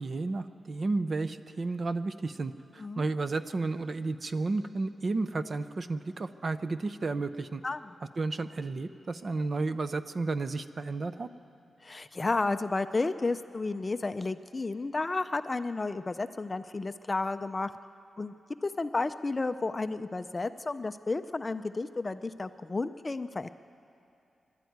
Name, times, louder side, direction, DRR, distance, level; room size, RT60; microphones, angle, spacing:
voice 1, 0.0-7.6 8.2-11.3, right 3 dB, 35° right, 11 dB, 0.6 m, -32 dB
voice 2, 11.8-17.7 18.2-18.3 18.6-23.5, left 3 dB, 25° left, 11 dB, 0.4 m, -32 dB
24.0 x 12.5 x 9.3 m, 2.7 s
wide cardioid pair, 160°, 0 cm